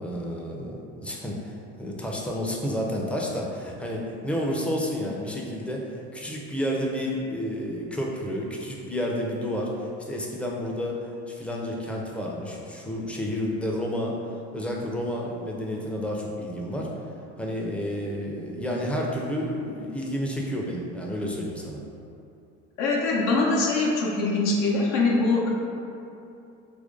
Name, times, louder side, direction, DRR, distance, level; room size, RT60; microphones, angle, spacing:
voice 1, 0.0-14.2 14.5-21.8, equal, 5° left, -2 dB, 0.5 m, -30 dB
voice 2, 22.8-25.5, left 3 dB, 65° left, -3 dB, 0.7 m, -23 dB
2.9 x 2.6 x 3.7 m, 2.7 s
hypercardioid pair, 75°, 34 cm